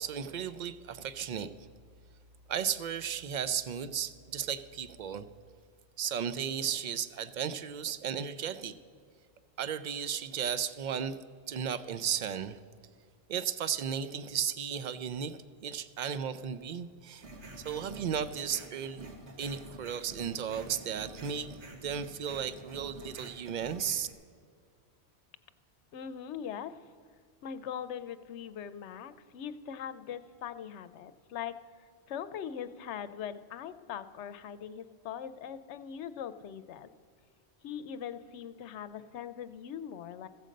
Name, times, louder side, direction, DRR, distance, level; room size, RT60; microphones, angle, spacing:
voice 1, 0.0-1.7 2.5-5.3 6.0-8.7 9.6-11.2 11.5-12.6 13.3-17.2 17.6-19.1 19.4-24.1, right 8 dB, 55° right, 13 dB, 0.5 m, -35 dB
sound 1, 17.2-24.1, right 1 dB, 85° right, 1.6 m, -48 dB
voice 2, 25.9-26.9 27.4-36.9 37.6-40.3, left 8 dB, 90° left, 13 dB, 0.9 m, -41 dB
15.0 x 7.6 x 5.1 m, 2.1 s
omnidirectional pair, 1.1 m